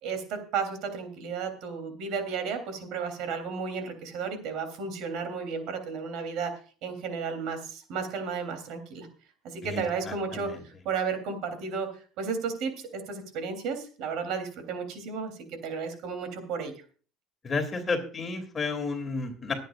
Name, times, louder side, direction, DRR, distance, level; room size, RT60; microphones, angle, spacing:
voice 1, 0.0-6.5 6.8-9.1 9.4-15.3 15.6-16.7, right 5 dB, 65° right, 7 dB, 3.4 m, -33 dB
voice 2, 9.7-10.6 17.4-19.5, left 4 dB, 25° left, 6 dB, 3.0 m, -32 dB
22.5 x 9.2 x 2.5 m, 0.39 s
cardioid pair, 135°, 0 cm